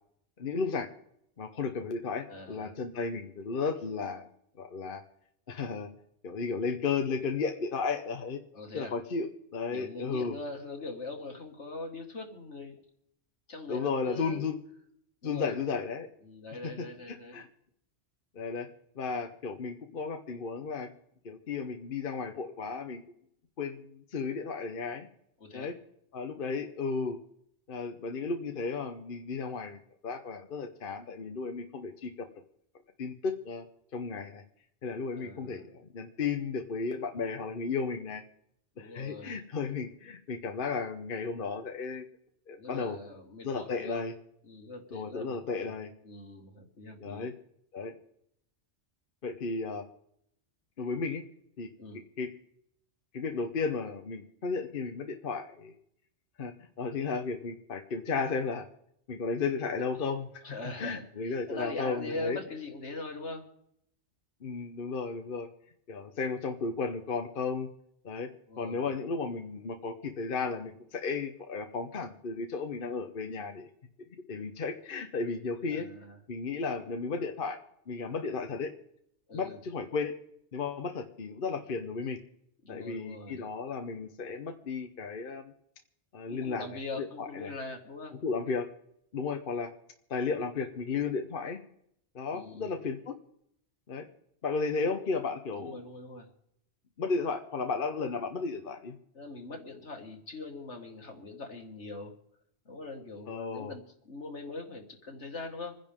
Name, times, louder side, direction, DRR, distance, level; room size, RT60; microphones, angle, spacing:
voice 1, 0.4-0.9 1.4-4.3 4.6-5.0 5.5-5.9 6.2-8.4 8.7-10.4 13.7-14.6 15.2-16.1 16.6-17.5 18.3-18.7 19.0-20.9 21.2-23.0 23.6-25.1 25.5-25.7 26.1-27.2 27.7-32.3 33.0-33.6 33.9-34.4 34.8-38.2 38.8-42.0 42.5-43.0 43.4-44.1 44.9-45.9 47.0-47.3 47.7-47.9 49.2-49.8 50.8-51.2 51.6-51.7 52.2-52.3 53.1-55.7 56.4-58.7 59.1-62.4 64.4-65.5 65.9-67.7 68.0-68.3 68.6-73.7 74.3-75.9 76.3-77.6 77.9-78.7 79.3-80.1 80.5-82.2 82.7-85.5 86.1-86.6 87.0-87.5 88.2-88.7 89.1-89.7 90.1-91.6 92.1-93.1 93.9-94.1 94.4-95.8 97.0-99.0 103.3-103.7, left 4 dB, 50° left, 5 dB, 1.1 m, -34 dB
voice 2, 2.3-2.7 8.5-8.9 9.7-12.8 13.5-14.4 15.2-15.5 16.2-17.4 25.4-25.7 35.1-35.6 38.8-39.4 42.5-44.0 44.4-45.8 46.0-47.3 51.8-52.0 60.4-63.5 68.5-68.9 75.7-76.2 79.3-79.6 82.6-83.4 86.3-88.2 92.3-92.8 95.5-96.3 99.1-102.1 102.7-105.8, left 2 dB, 80° left, 2 dB, 2.4 m, -42 dB
26.5 x 10.5 x 3.7 m, 0.72 s
omnidirectional pair, 1.2 m